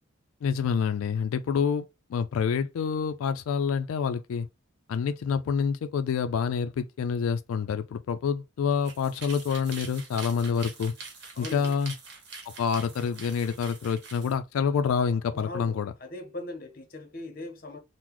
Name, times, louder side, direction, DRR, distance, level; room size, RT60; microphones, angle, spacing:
voice 1, 0.4-4.5 4.9-10.9 11.4-11.9 12.6-15.9, left 6 dB, 85° left, 0.3 m, -27 dB
sound 1, 8.7-14.3, right 4 dB, 55° right, 1.1 m, -44 dB
voice 2, 11.4-11.7 15.3-17.8, left 1 dB, 45° left, 0.6 m, -40 dB
3.7 x 2.0 x 3.0 m
head